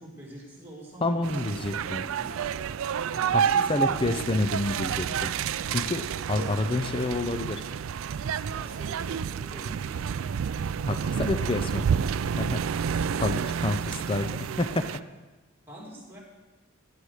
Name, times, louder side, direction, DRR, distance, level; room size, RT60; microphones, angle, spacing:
voice 1, 0.0-2.5 3.1-4.9 6.3-6.6 8.4-10.3 10.8-11.6 15.7-16.2, right 1 dB, 10° right, -3 dB, 2.8 m, -45 dB
voice 2, 1.0-2.1 3.3-3.4 3.7-5.3 5.7-7.6 10.9-11.8 12.3-12.6 13.2-15.0, left 2 dB, 25° left, 9 dB, 0.5 m, -28 dB
sound 1, 1.2-15.0, right 7 dB, 70° right, 0.3 m, -29 dB
15.0 x 9.6 x 4.9 m, 1.2 s
head